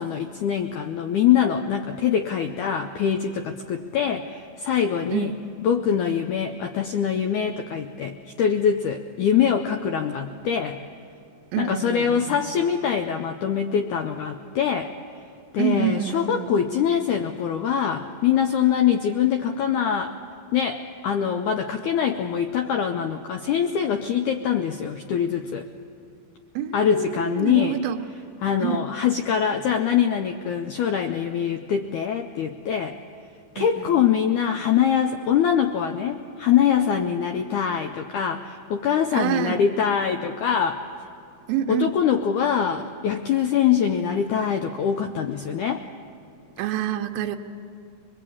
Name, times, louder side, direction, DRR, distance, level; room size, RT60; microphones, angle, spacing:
voice 1, 0.0-5.3 5.6-10.8 11.6-14.9 15.5-20.1 20.5-25.7 26.7-27.8 28.4-33.0 33.6-40.8 41.7-45.8, left 8 dB, 80° left, 6 dB, 1.8 m, -23 dB
voice 2, 11.5-12.4 15.6-16.5 26.6-28.0 28.6-28.9 33.6-33.9 39.1-39.6 41.5-41.9 46.6-47.4, right 10 dB, 80° right, 5 dB, 2.7 m, -27 dB
22.5 x 22.0 x 8.6 m, 2.5 s
omnidirectional pair, 4.3 m